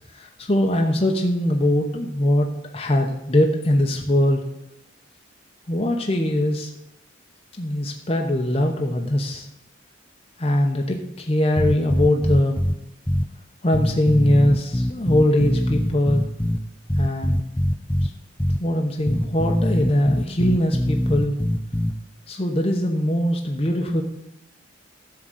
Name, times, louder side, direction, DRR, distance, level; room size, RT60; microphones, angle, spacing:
voice 1, 0.1-2.5 2.7-4.4 5.7-6.7 7.6-9.5 10.4-12.6 13.6-16.3 17.0-17.4 18.0-18.1 18.6-21.4 22.3-24.0, left 1 dB, 30° left, 2 dB, 0.8 m, -21 dB
sound 1, 11.6-12.7 13.1-13.2 13.7-16.6 16.9-18.1 18.4-18.6 19.1-21.9, equal, 5° left, 0.3 m, -22 dB
11.0 x 3.8 x 7.6 m, 0.84 s
head